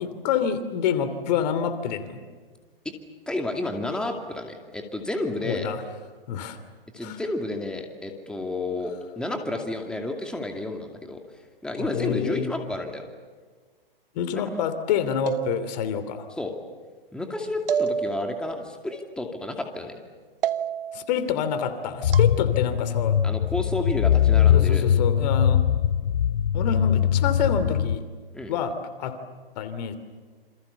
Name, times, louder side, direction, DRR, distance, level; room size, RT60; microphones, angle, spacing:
voice 1, 0.0-2.2 5.4-5.8 6.3-6.6 7.0-7.2 11.8-12.5 14.1-16.3 20.9-23.2 24.5-25.6 26.5-28.0 28.5-28.7 29.0-29.2 29.6-30.0, left 8 dB, 45° left, 11 dB, 2.8 m, -27 dB
voice 2, 3.3-5.7 6.9-11.2 11.6-13.0 14.5-14.7 16.4-16.5 17.1-20.0 23.2-24.8 28.3-28.5, left 2 dB, 5° left, 3 dB, 2.4 m, -31 dB
sound 1, 15.3-16.1 17.7-18.6 20.4-21.1 22.1-22.3, right 8 dB, 65° right, 1.1 m, -29 dB
sound 2, 22.0-28.0, left 9 dB, 65° left, 0.9 m, -21 dB
28.5 x 26.5 x 7.0 m, 1.5 s
hypercardioid pair, 125°, 30 cm